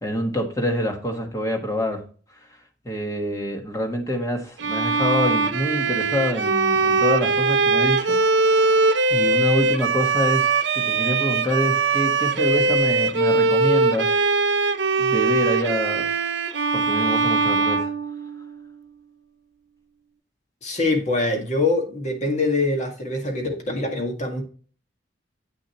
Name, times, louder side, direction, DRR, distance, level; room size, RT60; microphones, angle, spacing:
voice 1, 0.0-2.0 2.8-8.8 9.1-14.2 15.0-16.0 16.7-17.9, equal, 20° left, 1.5 m, -26 dB
Bowed string instrument, 4.6-18.7, right 3 dB, 75° right, 0.7 m, -21 dB
voice 2, 20.6-24.4, left 2 dB, 40° left, 1.8 m, -24 dB
8.4 x 6.3 x 3.0 m
head